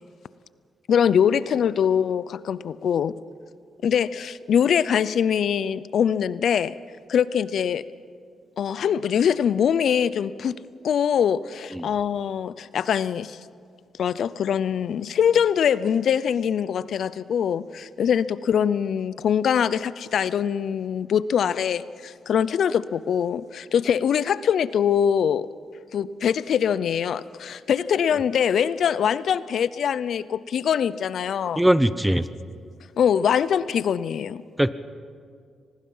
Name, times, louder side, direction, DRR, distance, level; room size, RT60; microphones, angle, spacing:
voice 1, 0.9-3.1 3.8-6.7 7.1-7.8 8.6-10.6 10.8-13.4 14.0-25.5 25.9-31.6 33.0-34.4, left 8 dB, 70° left, 17 dB, 0.5 m, -23 dB
voice 2, 31.6-32.2 34.6-34.7, right 1 dB, 5° right, 14 dB, 0.7 m, -19 dB
25.0 x 19.5 x 5.6 m, 2.2 s
cardioid pair, 110°, 0 cm